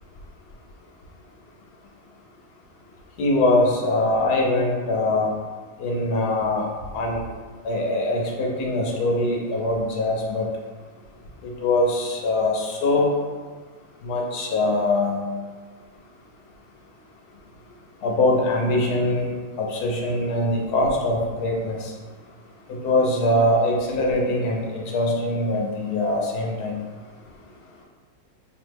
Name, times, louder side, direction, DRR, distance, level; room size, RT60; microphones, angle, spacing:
voice 1, 3.2-5.3 5.8-6.7 6.9-7.2 7.6-10.5 11.6-13.1 14.0-15.2 18.0-19.3 19.6-21.9 22.7-26.8, left 2 dB, 85° left, -1 dB, 1.2 m, -22 dB
3.6 x 2.1 x 3.2 m, 1.4 s
omnidirectional pair, 1.6 m